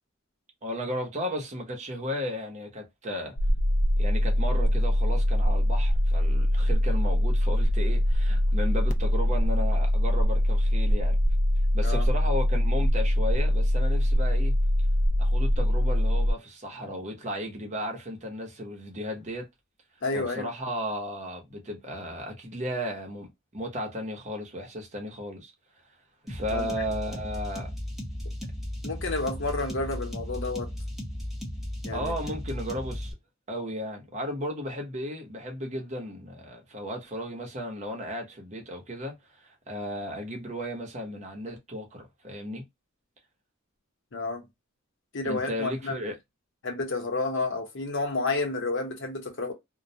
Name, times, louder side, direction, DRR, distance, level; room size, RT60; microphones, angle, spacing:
voice 1, 0.6-3.4 4.0-11.2 11.7-14.5 15.2-19.5 20.1-25.5 26.2-27.7 31.9-33.1 33.5-42.6 45.2-46.2, equal, 35° right, 0.8 m, -35 dB
sound 1, 3.4-16.3, equal, 35° left, 0.3 m, -23 dB
voice 2, 20.0-20.5 26.5-26.7 28.8-30.7 31.8-32.1 44.1-44.5 45.1-46.0 46.6-49.5, left 3 dB, 65° left, 0.8 m, -30 dB
sound 2, 26.3-33.1, left 1 dB, ahead, 0.8 m, -35 dB
2.2 x 2.1 x 2.7 m
head